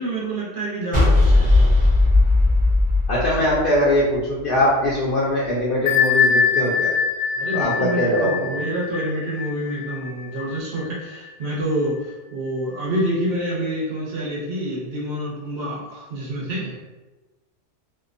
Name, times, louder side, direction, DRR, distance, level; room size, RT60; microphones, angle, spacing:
voice 1, 0.0-1.8 3.4-3.6 7.4-16.7, right 1 dB, 60° right, -6 dB, 1.0 m, -27 dB
sound 1, 0.9-4.2, left 2 dB, 10° right, 0.5 m, -16 dB
voice 2, 3.1-6.9 7.5-8.5, left 1 dB, 60° left, -7 dB, 0.6 m, -21 dB
Bell, 5.9-11.3, left 6 dB, 85° left, 1.0 m, -23 dB
2.8 x 2.1 x 2.4 m, 1.1 s
omnidirectional pair, 1.3 m